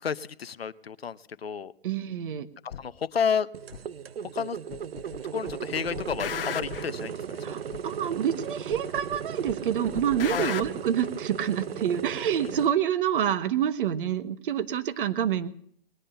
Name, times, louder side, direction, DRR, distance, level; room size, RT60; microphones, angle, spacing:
voice 1, 0.0-1.7 2.6-3.5 4.2-4.6 5.3-7.6 10.3-10.5 12.4-12.7, left 7 dB, 90° left, 15 dB, 0.8 m, -31 dB
voice 2, 1.8-2.5 7.4-15.5, right 9 dB, 60° right, 12 dB, 1.3 m, -27 dB
sound 1, 2.7-2.8 3.7-3.8 4.7-5.2 5.5-6.9 7.7-7.8 8.7-9.2 9.5-10.7, left 9 dB, 70° left, 1.2 m, -35 dB
sound 2, 3.5-12.7, right 8 dB, 85° right, 0.6 m, -36 dB
20.5 x 10.0 x 6.7 m, 0.67 s
hypercardioid pair, 125°, 29 cm